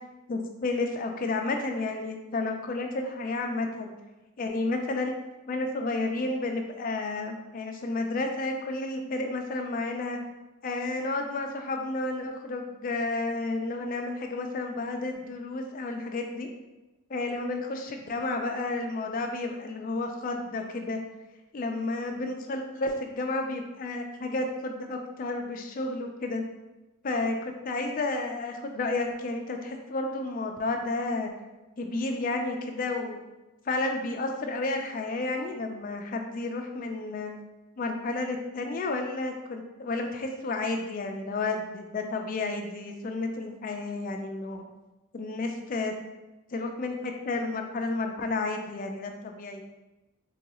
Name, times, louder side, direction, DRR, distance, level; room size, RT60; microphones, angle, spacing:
voice 1, 0.3-3.9 4.4-5.1 5.5-10.2 10.6-16.5 17.1-21.0 21.5-26.4 27.0-31.3 31.8-33.2 33.7-37.3 37.8-44.6 45.1-45.9 46.5-49.6, left 2 dB, 40° left, 4 dB, 0.3 m, -31 dB
3.8 x 2.3 x 2.9 m, 1.0 s
head